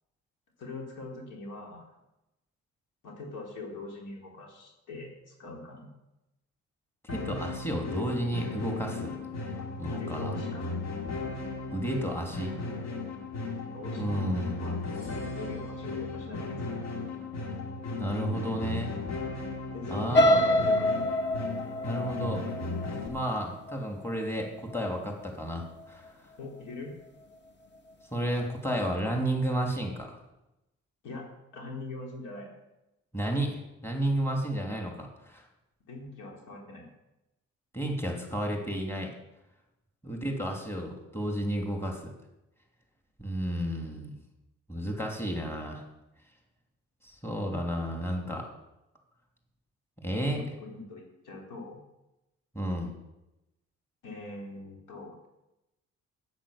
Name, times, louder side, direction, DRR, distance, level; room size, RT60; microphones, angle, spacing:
voice 1, 0.6-1.9 3.0-5.9 9.5-10.7 13.4-14.2 14.6-17.0 19.7-21.1 26.4-26.9 31.0-31.3 31.5-32.5 35.9-36.9 50.2-51.8 54.0-55.3, left 2 dB, 85° left, 0 dB, 3.8 m, -42 dB
sound 1, 7.1-23.1, left 3 dB, 60° left, 2.7 m, -36 dB
voice 2, 7.1-9.2 9.8-10.3 11.7-12.5 14.0-14.6 18.0-18.9 19.9-20.4 21.8-22.4 22.9-26.1 28.1-30.1 33.1-35.4 37.7-39.1 40.0-42.1 43.2-44.2 44.7-45.8 47.0-48.4 50.0-50.4 52.5-52.9, right 1 dB, 10° left, 1 dB, 2.8 m, -32 dB
sound 2, 20.1-24.1 24.6-24.9 25.2-25.3, equal, 35° left, 1.7 m, -26 dB
10.0 x 8.8 x 7.1 m, 0.93 s
cardioid pair, 90°, 30 cm